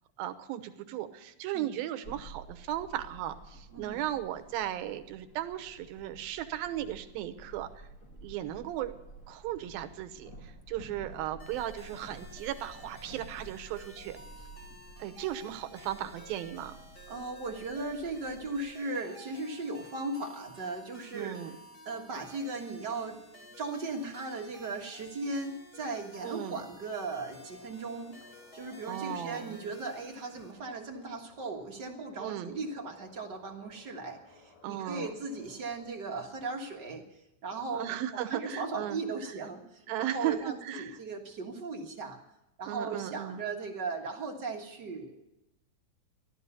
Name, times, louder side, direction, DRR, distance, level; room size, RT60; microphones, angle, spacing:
voice 1, 0.2-7.7 8.2-8.9 9.3-10.3 10.7-14.2 15.0-16.7 21.1-21.5 26.2-26.6 28.9-29.6 32.2-32.5 34.6-35.1 37.7-39.0 39.9-40.4 40.6-41.0 42.6-43.4, right 12 dB, 80° right, 9 dB, 2.8 m, -36 dB
sound 1, 2.0-18.7, right 2 dB, 40° left, 1.3 m, -51 dB
sound 2, 11.4-30.5, left 1 dB, 25° left, 1.3 m, -53 dB
voice 2, 17.1-21.5 21.8-23.2 23.6-28.1 28.5-42.2 42.6-45.3, right 3 dB, 55° right, 2 dB, 1.2 m, -37 dB
sound 3, 26.8-35.8, left 3 dB, 75° left, 5.9 m, -60 dB
16.0 x 12.0 x 6.7 m, 0.90 s
omnidirectional pair, 4.2 m